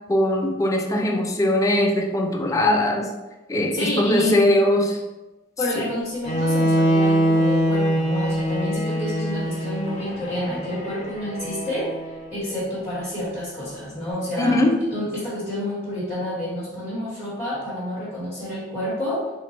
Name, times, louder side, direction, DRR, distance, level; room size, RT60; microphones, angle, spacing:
voice 1, 0.1-3.1 3.5-5.0 14.4-14.8, left 1 dB, 15° left, 2 dB, 0.4 m, -20 dB
voice 2, 3.7-4.5 5.6-11.9 12.3-14.6 14.9-19.2, left 1 dB, 5° right, -10 dB, 1.5 m, -29 dB
Bowed string instrument, 6.2-12.3, equal, 35° left, 0.8 m, -23 dB
3.7 x 2.4 x 4.3 m, 1.1 s
head